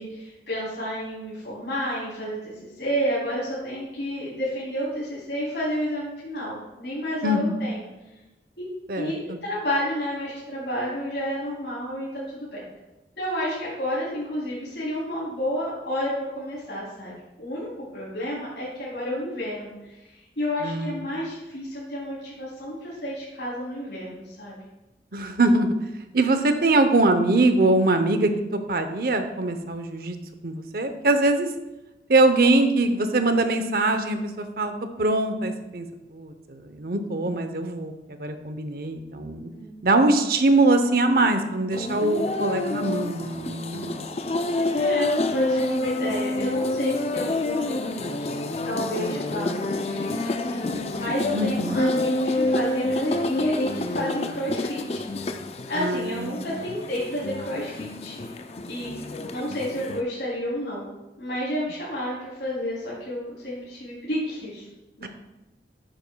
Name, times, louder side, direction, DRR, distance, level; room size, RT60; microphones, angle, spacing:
voice 1, 0.0-7.9 8.6-8.7 8.9-12.6 13.2-20.1 20.4-24.6 39.5-40.0 44.8-48.4 48.6-55.0 55.7-58.2 58.7-60.8 61.2-64.6 65.0-65.1, equal, 80° left, -8 dB, 3.1 m, -31 dB
voice 2, 7.2-7.7 8.9-9.4 20.6-21.1 25.1-25.7 26.1-30.2 30.4-31.5 32.1-35.9 36.1-39.5 39.8-44.1 51.3-51.8 55.8-56.7 65.0-65.1, right 2 dB, 55° right, 8 dB, 0.7 m, -23 dB
sound 1, 41.7-60.0, left 2 dB, 35° left, 0.4 m, -28 dB
11.0 x 8.9 x 2.3 m, 1.0 s
head